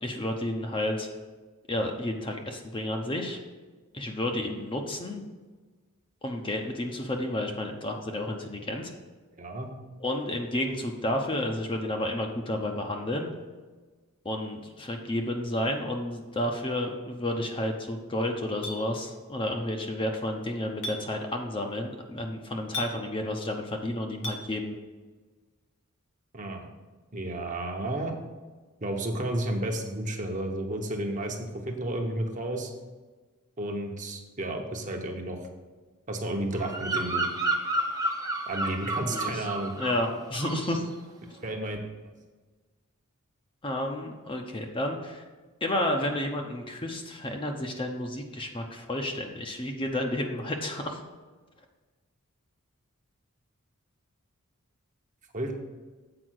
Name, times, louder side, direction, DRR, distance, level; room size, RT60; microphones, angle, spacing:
voice 1, 0.0-1.1 1.7-3.4 3.9-5.2 6.2-8.9 10.0-13.3 14.2-24.7 39.1-39.4 39.8-40.9 43.6-45.2 45.6-51.0, left 1 dB, 25° left, 3 dB, 0.7 m, -31 dB
voice 2, 9.4-9.7 26.3-26.7 27.1-28.1 28.8-32.7 33.6-35.4 36.1-37.3 38.5-39.7 41.4-41.8 55.3-55.5, right 1 dB, 35° right, 2 dB, 1.0 m, -32 dB
Chink clink, 18.6-18.8 20.8-21.0 22.7-22.9 24.2-24.4, left 1 dB, 70° left, 1.7 m, -33 dB
Bird vocalization bird call bird song, 36.5-40.1 40.3-40.8, right 2 dB, 15° right, 0.7 m, -31 dB
7.8 x 4.9 x 6.3 m, 1.3 s
head